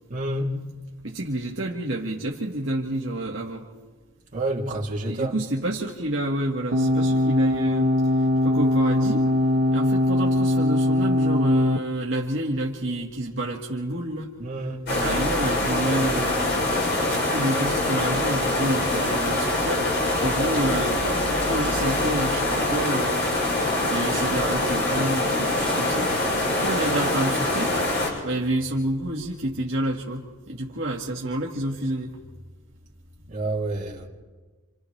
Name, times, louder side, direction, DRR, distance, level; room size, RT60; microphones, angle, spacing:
voice 1, 0.1-0.6 4.3-5.3 14.4-14.9 33.3-34.1, right 1 dB, 40° right, 3.2 m, -28 dB
voice 2, 1.0-3.6 5.1-9.4 9.7-14.3 14.9-16.5 17.1-23.2 23.9-26.1 26.5-27.8 28.2-32.2, right 1 dB, 60° right, 1.8 m, -29 dB
sound 1, 6.7-11.8, left 1 dB, 80° right, 1.3 m, -21 dB
sound 2, 14.9-28.1, left 2 dB, 55° left, 7.0 m, -24 dB
28.5 x 27.5 x 3.3 m
head